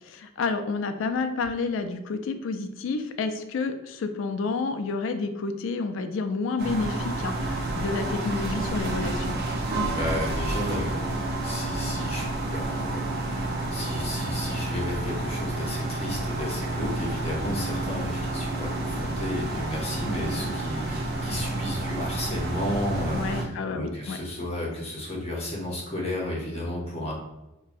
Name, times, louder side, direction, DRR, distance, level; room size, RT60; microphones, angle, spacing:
voice 1, 0.0-9.4 23.1-24.2, left 4 dB, 60° left, 8 dB, 0.3 m, -30 dB
sound 1, 6.6-23.4, right 2 dB, 50° right, 0.5 m, -30 dB
voice 2, 9.8-11.0 11.4-12.3 12.5-27.1, left 1 dB, 30° left, -3 dB, 0.7 m, -33 dB
4.8 x 2.1 x 2.5 m, 0.98 s
head